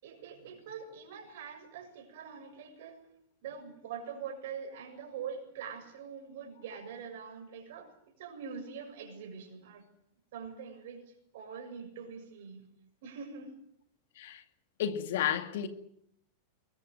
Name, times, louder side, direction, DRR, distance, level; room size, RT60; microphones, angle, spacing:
voice 1, 0.0-3.0 3.4-7.9 8.2-9.9 10.3-12.7 13.0-13.6, right 6 dB, 55° right, 6.9 m, -44 dB
voice 2, 14.8-15.7, left 10 dB, 55° left, 2.2 m, -31 dB
24.0 x 22.0 x 8.0 m
figure-of-eight pair, 90°, 0 cm